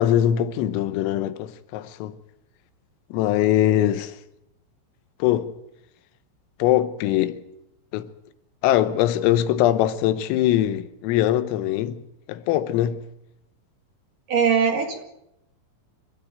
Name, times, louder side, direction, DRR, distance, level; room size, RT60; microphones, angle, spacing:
voice 1, 0.0-2.2 3.1-4.2 5.2-5.6 6.6-7.4 7.9-8.1 8.6-12.0 12.3-13.0, left 12 dB, 80° left, 3.6 m, -22 dB
voice 2, 14.3-15.0, right 6 dB, 50° right, 2.9 m, -21 dB
27.5 x 14.0 x 9.1 m
omnidirectional pair, 6.0 m